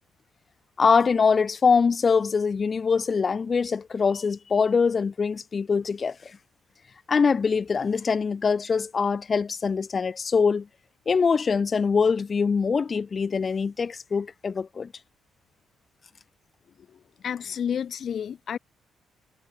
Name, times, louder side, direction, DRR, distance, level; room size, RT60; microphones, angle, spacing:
voice 1, 0.8-6.3 7.1-10.7 11.1-14.9, left 5 dB, 40° left, 5.3 m, -23 dB
voice 2, 17.2-18.6, left 8 dB, 55° left, 4.4 m, -30 dB
cardioid pair, 90°, 0 cm